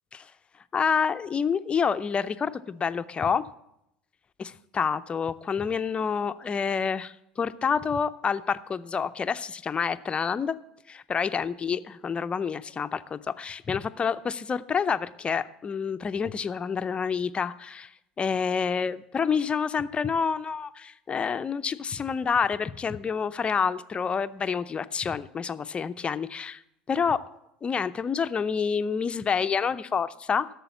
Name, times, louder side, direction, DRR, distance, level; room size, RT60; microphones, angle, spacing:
voice 1, 0.7-3.4 4.4-10.5 10.9-26.6 26.9-27.2 27.6-30.5, left 6 dB, 25° left, 12 dB, 0.5 m, -28 dB
11.5 x 6.9 x 7.0 m, 0.80 s
hypercardioid pair, 70°, 4 cm